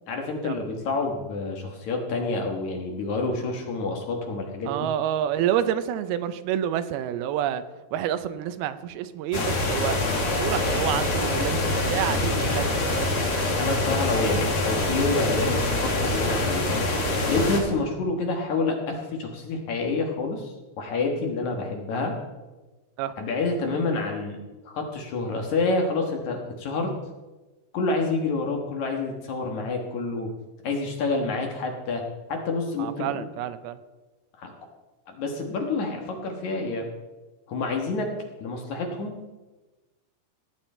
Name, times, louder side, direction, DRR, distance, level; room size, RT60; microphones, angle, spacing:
voice 1, 0.1-4.9 13.6-16.9 17.3-22.1 23.2-26.9 27.7-30.3 30.6-32.0 32.3-33.2 34.4-34.5 35.1-36.9 37.5-38.1 38.4-39.2, left 3 dB, 60° left, 2 dB, 2.4 m, -28 dB
voice 2, 4.7-7.6 7.9-13.3 23.0-23.1 32.8-33.8, right 10 dB, 85° right, 12 dB, 2.6 m, -28 dB
sound 1, 9.3-17.6, left 2 dB, 45° left, 2.3 m, -25 dB
17.0 x 9.0 x 4.4 m, 1.2 s
omnidirectional pair, 4.4 m